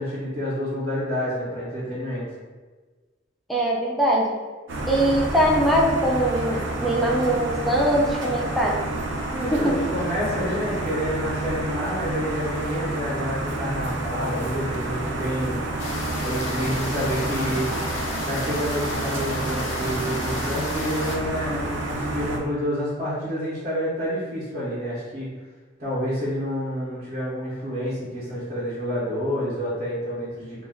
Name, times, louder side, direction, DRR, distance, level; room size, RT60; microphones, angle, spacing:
voice 1, 0.0-2.3 9.3-15.6 16.2-17.7 18.2-25.3 25.8-30.7, equal, 40° right, -8 dB, 0.6 m, -28 dB
voice 2, 3.5-4.3 4.9-8.8 9.5-9.9, right 1 dB, ahead, -4 dB, 0.4 m, -22 dB
sound 1, 4.7-22.4, right 2 dB, 80° right, 0.4 m, -29 dB
sound 2, 15.8-21.2, left 1 dB, 75° left, 0.5 m, -33 dB
2.3 x 2.1 x 3.5 m, 1.4 s
head